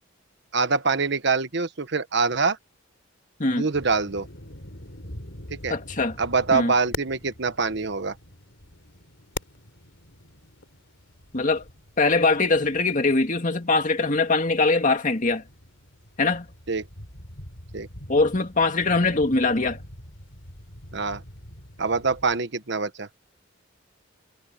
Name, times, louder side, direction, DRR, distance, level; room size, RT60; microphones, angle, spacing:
voice 1, 0.5-2.6 3.5-4.3 5.5-5.7 6.2-8.1 16.7-16.9 17.7-17.9 20.9-21.2 21.8-23.1, right 4 dB, 60° right, 1.3 m, -24 dB
sound 1, 3.7-22.4, left 1 dB, 60° left, 4.2 m, -43 dB
voice 2, 5.7-6.2 6.5-6.7 11.3-11.6 12.0-15.4 16.2-16.5 18.1-19.8, left 3 dB, 40° left, 2.1 m, -22 dB
head